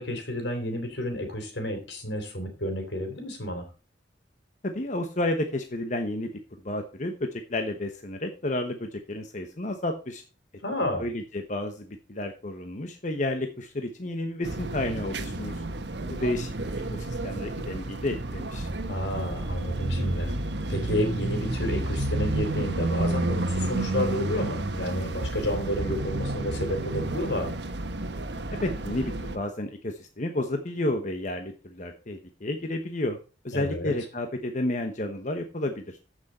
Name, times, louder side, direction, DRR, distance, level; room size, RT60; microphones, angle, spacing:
voice 1, 0.0-3.7 10.6-11.0 18.9-20.3 20.7-27.5 33.5-33.9, left 1 dB, 85° left, 4 dB, 3.8 m, -30 dB
voice 2, 4.6-6.3 6.6-10.2 11.0-15.6 16.0-16.5 16.9-18.7 28.5-33.2 33.4-36.0, left 1 dB, 45° left, 5 dB, 1.1 m, -31 dB
sound 1, 14.4-29.4, right 2 dB, 75° right, 1.2 m, -31 dB
14.5 x 6.3 x 4.2 m, 0.33 s
head